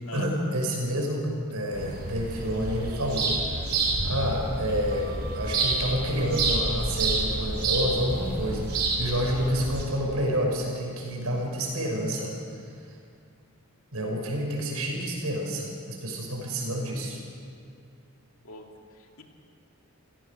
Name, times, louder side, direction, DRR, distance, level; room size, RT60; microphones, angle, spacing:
voice 1, 0.1-3.3 4.0-12.4 13.9-17.2, equal, 85° right, 0 dB, 6.0 m, -29 dB
sound 1, 1.7-9.8, right 3 dB, 45° right, 4.0 m, -29 dB
voice 2, 18.4-19.2, left 3 dB, 70° left, 2 dB, 2.6 m, -45 dB
28.5 x 17.0 x 6.7 m, 2.4 s
head